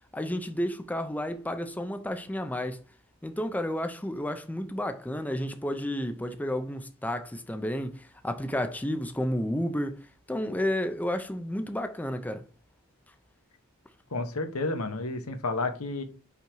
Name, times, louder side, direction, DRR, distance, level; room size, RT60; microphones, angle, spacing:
voice 1, 0.0-2.8 3.2-12.4, left 1 dB, 5° left, 0.5 m, -31 dB
voice 2, 14.1-16.0, left 3 dB, 75° left, 1.3 m, -31 dB
5.5 x 5.1 x 4.6 m
head